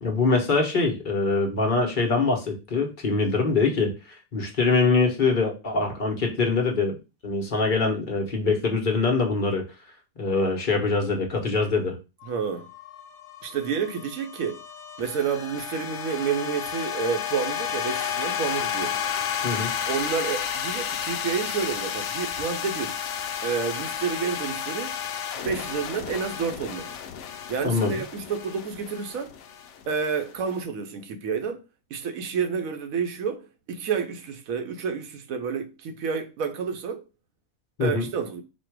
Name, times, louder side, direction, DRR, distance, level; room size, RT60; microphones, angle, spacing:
voice 1, 0.0-3.9 4.3-7.0 7.2-9.6 10.2-12.0 19.4-19.7 27.6-28.0 37.8-38.1, left 3 dB, 40° left, 1.0 m, -23 dB
sound 1, 12.2-30.5, left 8 dB, 65° left, 0.8 m, -32 dB
voice 2, 12.3-12.7 13.4-14.6 15.0-19.0 19.9-23.0 23.4-25.0 25.4-26.9 27.5-29.3 29.9-31.6 31.9-37.0 37.8-38.4, right 6 dB, 75° right, 1.1 m, -29 dB
4.3 x 2.4 x 4.5 m
omnidirectional pair, 1.5 m